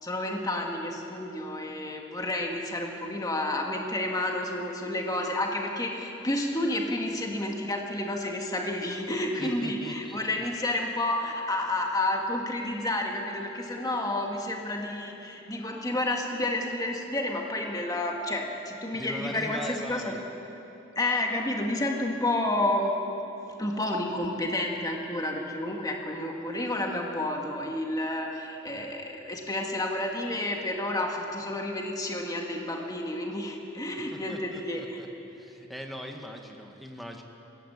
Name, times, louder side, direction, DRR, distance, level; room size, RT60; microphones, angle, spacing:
voice 1, 0.0-20.1 21.0-22.9 23.6-35.0, left 1 dB, 20° left, 1 dB, 1.9 m, -30 dB
voice 2, 9.4-10.4 18.9-20.2 34.1-35.1 35.3-37.2, equal, ahead, 2 dB, 1.7 m, -40 dB
21.0 x 18.0 x 8.2 m, 2.9 s
head